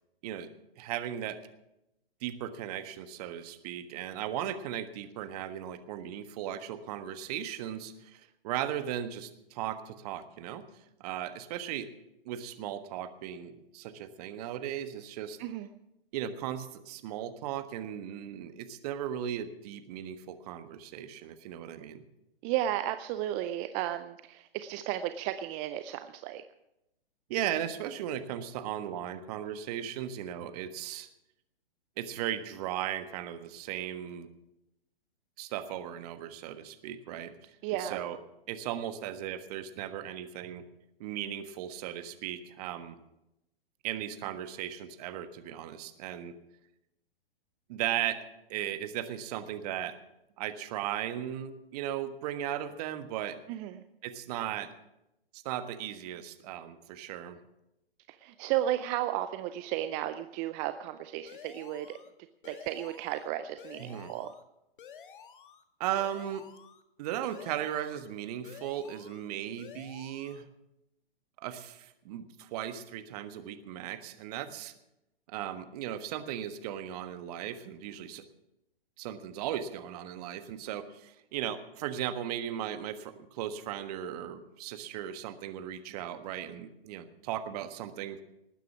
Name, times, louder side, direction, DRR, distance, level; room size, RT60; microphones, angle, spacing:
voice 1, 0.8-1.4 2.2-10.6 11.0-11.9 12.2-15.4 16.1-22.0 27.3-31.1 32.0-34.3 35.4-37.3 37.8-38.2 38.5-40.6 41.0-43.0 43.8-46.3 47.7-48.2 48.5-49.9 50.4-53.4 54.0-54.7 55.3-57.4 63.8-64.1 65.8-66.4 67.0-70.5 71.4-74.7 75.3-78.2 79.0-88.2, right 10 dB, 40° right, 9 dB, 1.5 m, -37 dB
voice 2, 22.4-26.4 37.6-38.0 53.5-53.8 58.1-62.0 62.4-64.3, right 12 dB, 20° right, 10 dB, 0.5 m, -34 dB
sound 1, 61.3-62.1 62.4-63.3 63.6-64.4 64.8-65.6 66.0-66.8 67.3-68.1 68.4-69.3 69.6-70.4, left 7 dB, 60° left, 1.6 m, -51 dB
19.5 x 9.3 x 6.0 m, 0.88 s
figure-of-eight pair, 120°, 30 cm